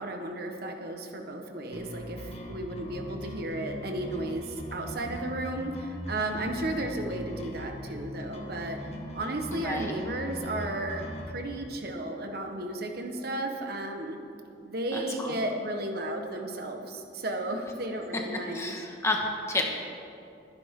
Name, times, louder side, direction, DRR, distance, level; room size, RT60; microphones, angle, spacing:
voice 1, 0.0-8.8 9.1-14.2 14.6-18.8, right 1 dB, 60° right, 4 dB, 1.3 m, -34 dB
sound 1, 1.7-11.3, equal, 40° left, 1.4 m, -40 dB
voice 2, 9.5-9.9 14.9-15.4 18.5-19.6, left 2 dB, 15° left, 0 dB, 1.6 m, -31 dB
23.0 x 10.0 x 3.8 m, 2.5 s
head